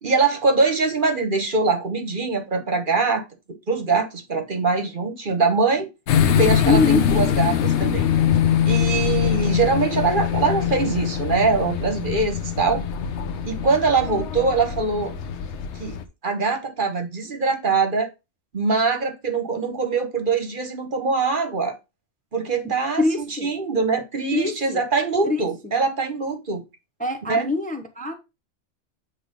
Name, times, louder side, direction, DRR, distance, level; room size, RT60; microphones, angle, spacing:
voice 1, 0.0-3.2 3.7-5.9 6.2-8.1 8.6-12.8 13.4-15.1 15.8-18.1 18.5-21.8 22.3-26.6 27.3-27.5, right 4 dB, 45° right, 1.2 m, -23 dB
sound 1, 6.1-16.0, left 9 dB, 65° left, 1.0 m, -23 dB
voice 2, 6.6-7.1 22.6-23.5 24.3-24.8 25.2-25.4 27.0-28.2, left 3 dB, 10° left, 0.7 m, -24 dB
8.1 x 3.2 x 5.2 m
omnidirectional pair, 1.3 m